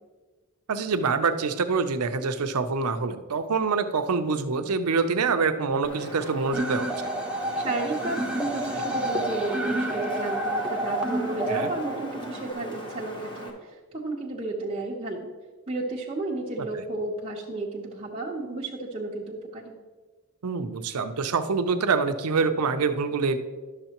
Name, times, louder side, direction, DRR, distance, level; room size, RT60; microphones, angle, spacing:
voice 1, 0.7-6.9 11.5-11.7 16.7-16.8 20.4-23.4, right 4 dB, 85° right, 9 dB, 0.6 m, -25 dB
Wind, 5.8-13.5, left 1 dB, 20° left, 1.1 m, -39 dB
sound 1, 6.5-12.5, right 1 dB, 5° right, 0.5 m, -30 dB
voice 2, 7.6-15.3 15.7-19.8, right 2 dB, 25° right, -5 dB, 0.9 m, -32 dB
11.0 x 6.7 x 2.9 m, 1.3 s
head